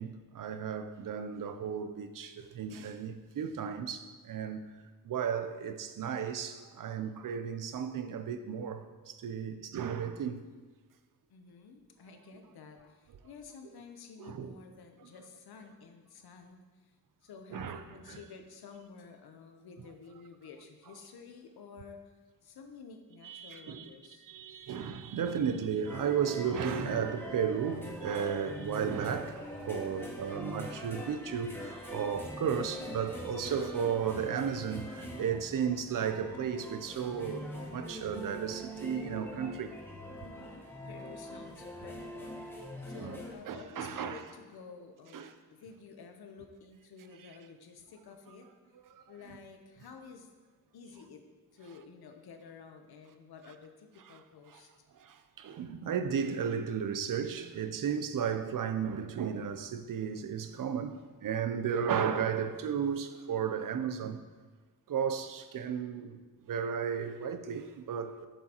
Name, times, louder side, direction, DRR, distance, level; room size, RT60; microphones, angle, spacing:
voice 1, 0.0-4.6 5.0-10.4 14.2-14.5 15.0-15.1 17.5-17.8 18.1-18.2 23.2-23.9 24.2-39.8 43.0-43.2 43.5-44.2 45.1-45.3 47.2-47.3 48.9-49.0 54.0-54.2 54.5-54.6 54.9-64.2 64.9-66.2 66.5-68.3, right 7 dB, 60° right, 0.6 m, -34 dB
voice 2, 11.3-16.9 17.2-22.0 22.4-24.3 40.2-48.5 49.1-50.3 50.7-51.2 51.5-54.7, left 5 dB, 85° left, 0.8 m, -51 dB
sound 1, 25.9-43.3, equal, 5° left, 0.9 m, -43 dB
8.1 x 6.2 x 2.9 m
wide cardioid pair, 125°, 37 cm